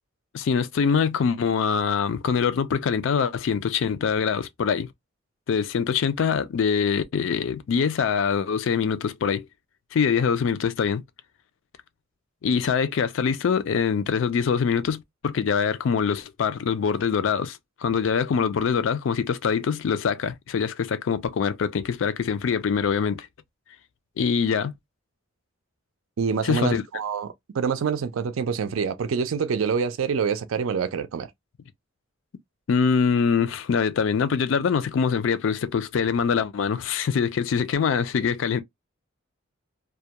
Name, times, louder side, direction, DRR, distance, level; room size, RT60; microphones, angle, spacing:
voice 1, 0.3-4.9 5.5-9.5 9.9-11.0 12.4-23.3 24.2-24.7 26.4-26.8 32.7-38.6, left 6 dB, 70° left, 0.3 m, -24 dB
voice 2, 26.2-31.3, right 6 dB, 80° right, 0.4 m, -26 dB
2.3 x 2.1 x 2.7 m
head